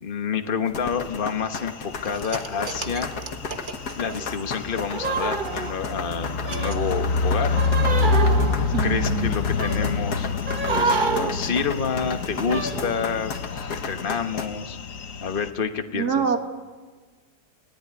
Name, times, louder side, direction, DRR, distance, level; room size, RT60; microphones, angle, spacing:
voice 1, 0.0-3.1 4.0-7.6 8.8-10.3 10.7-13.3 13.7-14.8 15.2-16.2, left 6 dB, 35° left, 7 dB, 1.5 m, -28 dB
sound 1, 0.7-14.5, left 4 dB, 75° left, 2.3 m, -34 dB
sound 2, 0.9-15.5, left 3 dB, 55° left, 1.5 m, -28 dB
sound 3, 2.0-6.1 6.4-10.0 10.5-13.0 13.3-13.4, right 4 dB, 35° right, 1.3 m, -29 dB
voice 2, 8.7-9.3 15.9-16.4, right 7 dB, 75° right, 7 dB, 2.4 m, -25 dB
30.0 x 17.5 x 9.7 m, 1.4 s
omnidirectional pair, 1.7 m